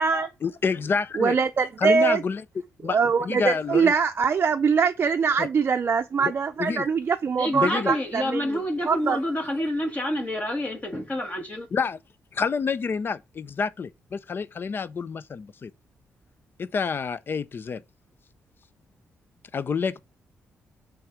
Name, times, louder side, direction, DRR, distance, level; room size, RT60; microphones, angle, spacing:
voice 1, 0.4-1.4 1.8-2.4 2.8-3.9 5.4-5.5 6.2-6.3 6.6-6.9 7.5-7.9 11.7-12.0 12.3-15.7 16.6-17.8 19.5-20.0, left 5 dB, 45° left, 0.5 m, -28 dB
voice 2, 1.2-2.2 2.8-8.6 8.9-9.2, right 5 dB, 45° right, 0.5 m, -23 dB
voice 3, 7.4-11.7, left 1 dB, 30° left, 1.4 m, -28 dB
6.2 x 3.5 x 4.9 m
cardioid pair, 85°, 5 cm